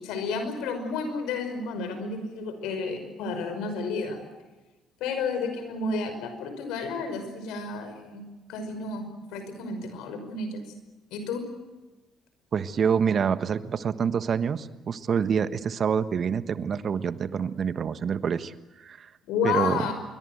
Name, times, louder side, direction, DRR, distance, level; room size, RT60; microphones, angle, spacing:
voice 1, 0.0-4.2 5.0-10.6 11.1-11.5 19.2-19.9, left 4 dB, 75° left, 8 dB, 5.5 m, -31 dB
voice 2, 12.5-19.1 19.4-19.9, right 7 dB, 50° right, 13 dB, 1.4 m, -27 dB
26.5 x 23.5 x 8.0 m, 1.2 s
hypercardioid pair, 55°, 0 cm